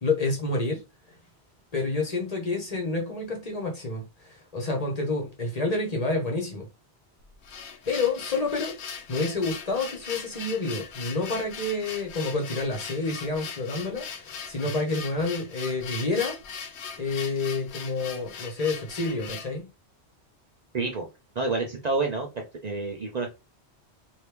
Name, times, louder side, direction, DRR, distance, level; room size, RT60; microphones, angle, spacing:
voice 1, 0.0-0.8 1.7-6.7 7.9-16.4 17.0-19.7, left 3 dB, 40° left, 1.0 m, -29 dB
sound 1, 7.2-19.6, left 6 dB, 80° left, 0.9 m, -39 dB
voice 2, 20.7-21.1 21.4-22.3 22.6-23.3, right 3 dB, 45° right, 0.6 m, -28 dB
3.0 x 2.7 x 3.3 m
omnidirectional pair, 1.1 m